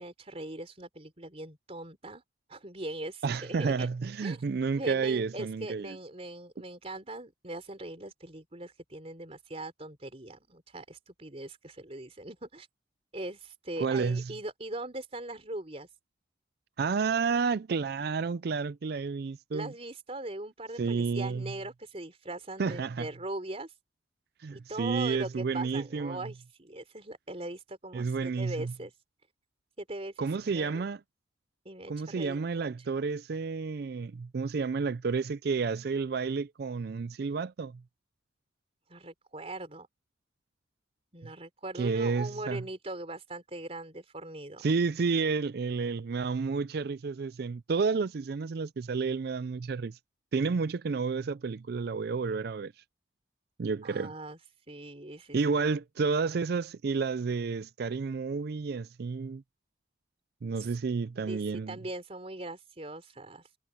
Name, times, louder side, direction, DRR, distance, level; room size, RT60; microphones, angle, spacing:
voice 1, 0.0-2.2 2.5-3.9 4.2-4.4 4.8-12.7 13.1-15.9 19.5-23.8 24.5-29.0 29.8-30.8 31.7-32.9 38.9-39.9 41.1-44.6 53.8-55.4 60.5-60.8 61.3-63.6, right 2 dB, 35° right, 4.0 m, -41 dB
voice 2, 3.2-6.0 13.8-14.2 16.8-19.7 20.8-21.5 22.6-23.1 24.4-26.2 27.9-28.7 30.2-31.0 31.9-37.8 41.8-42.6 44.6-50.0 50.3-52.7 53.6-54.1 55.3-59.4 60.4-61.8, right 4 dB, 55° right, 0.4 m, -30 dB
head